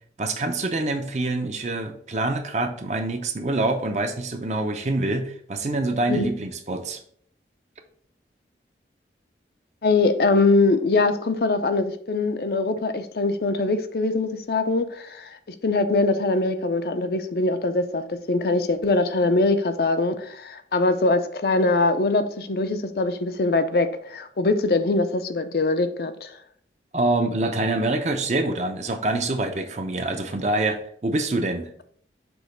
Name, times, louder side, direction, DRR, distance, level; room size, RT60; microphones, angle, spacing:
voice 1, 0.2-7.0 26.9-31.7, right 2 dB, 40° right, 6 dB, 0.6 m, -25 dB
voice 2, 9.8-15.4 15.6-26.3, left 3 dB, 60° left, 9 dB, 0.5 m, -22 dB
6.1 x 3.0 x 5.0 m, 0.62 s
head